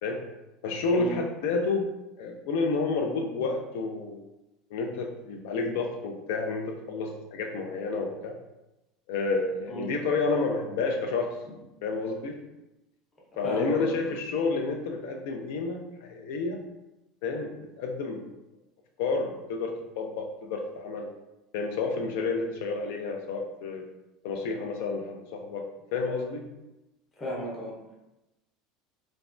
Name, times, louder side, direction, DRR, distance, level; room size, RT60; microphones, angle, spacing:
voice 1, 0.6-1.9 2.2-4.2 4.7-8.4 9.1-11.4 11.8-12.4 13.4-16.6 17.2-18.3 19.0-21.1 21.5-23.8 24.2-26.5, left 3 dB, 70° left, 3 dB, 0.3 m, -30 dB
voice 2, 13.4-13.9 27.2-27.7, right 1 dB, 15° left, -4 dB, 0.6 m, -34 dB
3.1 x 2.1 x 2.5 m, 0.97 s
cardioid pair, 170°, 0 cm